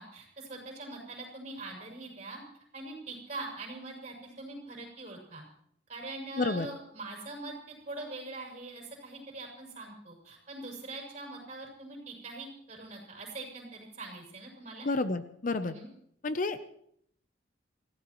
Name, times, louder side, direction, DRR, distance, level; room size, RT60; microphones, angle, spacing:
voice 1, 0.0-5.4 5.9-14.9 15.6-15.9, right 2 dB, 35° right, 0 dB, 6.4 m, -43 dB
voice 2, 14.8-15.7 16.2-16.7, left 3 dB, 45° left, 11 dB, 0.7 m, -30 dB
27.0 x 16.0 x 3.1 m, 0.70 s
head